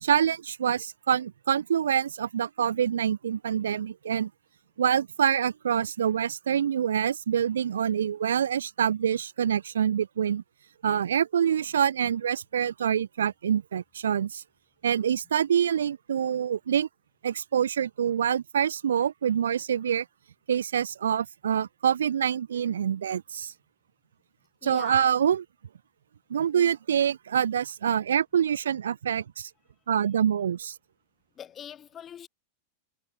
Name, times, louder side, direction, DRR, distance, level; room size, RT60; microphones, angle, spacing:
voice 1, 0.0-4.3 4.8-10.4 10.8-14.4 14.8-16.9 17.2-20.0 20.5-23.5 24.6-25.4 26.3-29.5 29.9-30.7, right 8 dB, 65° right, 1.0 m, -26 dB
voice 2, 24.6-25.0 26.5-26.7 31.4-32.3, left 9 dB, 25° left, 3.9 m, -43 dB
figure-of-eight pair, 90°, 0 cm